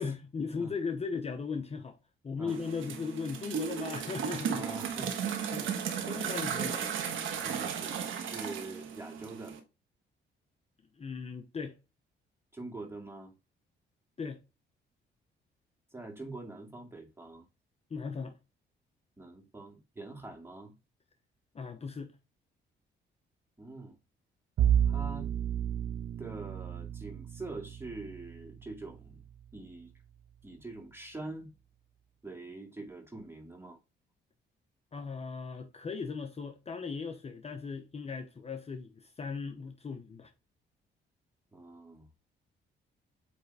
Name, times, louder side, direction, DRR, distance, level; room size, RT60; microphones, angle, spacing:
voice 1, 0.0-2.0 2.2-4.7 5.0-5.1 5.5-5.7 6.1-6.9 11.0-11.8 14.2-14.4 17.9-18.4 21.5-22.1 34.9-40.3, left 5 dB, 30° left, 0.8 m, -37 dB
sound 1, 2.5-9.6, right 7 dB, 80° right, 1.4 m, -35 dB
voice 2, 4.5-5.4 7.4-9.5 12.5-13.3 15.9-17.4 19.2-20.7 23.6-24.0 24.9-25.3 26.2-29.2 29.5-29.9 30.4-31.5 32.2-33.8 41.5-42.1, right 2 dB, 10° right, 2.3 m, -44 dB
Bowed string instrument, 24.6-29.7, right 9 dB, 55° right, 0.6 m, -32 dB
8.4 x 3.4 x 3.4 m
cardioid pair, 90°, 20 cm